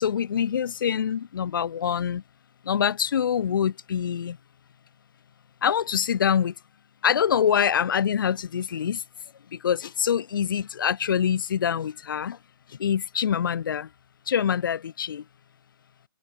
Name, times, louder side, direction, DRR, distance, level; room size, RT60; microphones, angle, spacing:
voice 1, 0.0-2.2 2.6-4.4 5.6-6.5 7.0-9.0 9.5-12.4 12.7-13.9 14.3-15.2, left 8 dB, 60° left, 1.1 m, -25 dB
hypercardioid pair, 155°, 13 cm